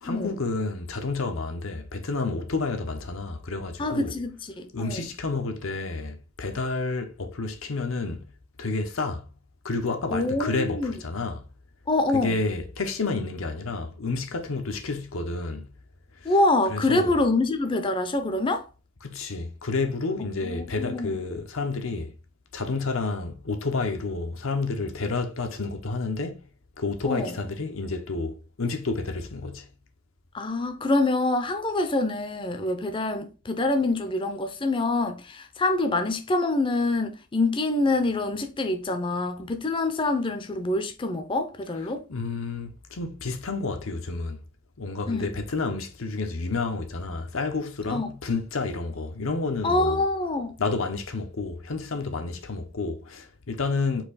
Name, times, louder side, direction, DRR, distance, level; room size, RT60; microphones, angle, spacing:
voice 1, 0.0-4.1 4.7-8.3 8.6-9.3 9.6-11.4 12.1-15.7 16.2-16.3 16.7-17.1 19.0-22.1 22.5-26.4 26.8-29.7 42.1-44.4 44.8-50.0 50.6-54.0, left 3 dB, 80° left, 0.8 m, -30 dB
voice 2, 3.8-5.1 10.1-10.9 11.9-12.4 16.2-18.7 20.2-21.2 27.0-27.4 30.3-42.0 45.1-45.3 47.9-48.1 49.6-50.5, left 2 dB, 25° left, 0.5 m, -26 dB
4.6 x 2.8 x 3.9 m
head